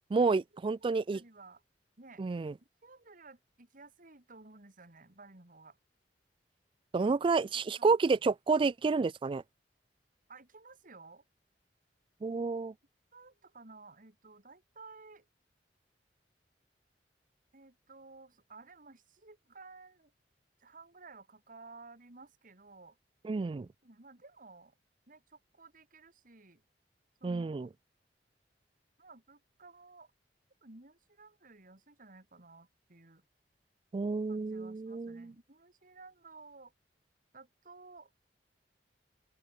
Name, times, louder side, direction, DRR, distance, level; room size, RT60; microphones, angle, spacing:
voice 1, 0.1-1.2 2.2-2.5 6.9-9.4 12.2-12.7 23.2-23.7 27.2-27.7 33.9-35.3, right 4 dB, 30° right, 0.3 m, -30 dB
voice 2, 0.7-1.6 2.0-2.2 2.8-5.8 7.0-7.2 7.8-8.0 10.3-11.2 13.1-15.3 17.5-20.1 20.6-23.0 23.8-24.7 25.1-26.6 27.2-27.7 29.0-30.1 30.6-33.2 34.3-36.7 37.3-38.1, right 3 dB, 50° right, 3.0 m, -55 dB
head